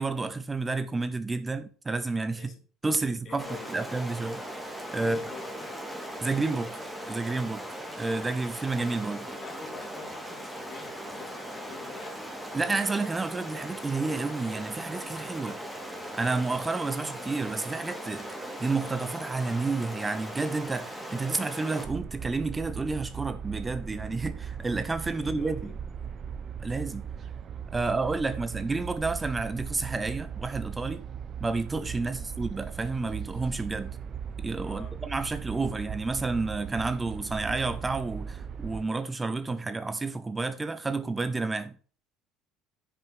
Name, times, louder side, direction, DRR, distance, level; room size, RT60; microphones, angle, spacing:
voice 1, 0.0-2.5 2.8-4.4 4.9-5.2 6.2-6.8 7.1-7.6 8.0-9.3 12.5-15.6 16.1-18.3 18.6-25.7 26.6-27.1 27.7-31.0 31.4-33.9 34.4-41.7, right 3 dB, 20° right, 0.9 m, -30 dB
voice 2, 3.0-3.8 5.0-5.8 9.4-12.3 25.2-25.8 32.0-32.3 34.6-35.0, left 6 dB, 45° left, 2.9 m, -47 dB
Stream, 3.4-21.8, equal, 5° right, 3.4 m, -39 dB
sound 1, 21.8-38.9, right 7 dB, 45° right, 0.9 m, -38 dB
10.0 x 6.4 x 4.6 m
hypercardioid pair, 75°, 0 cm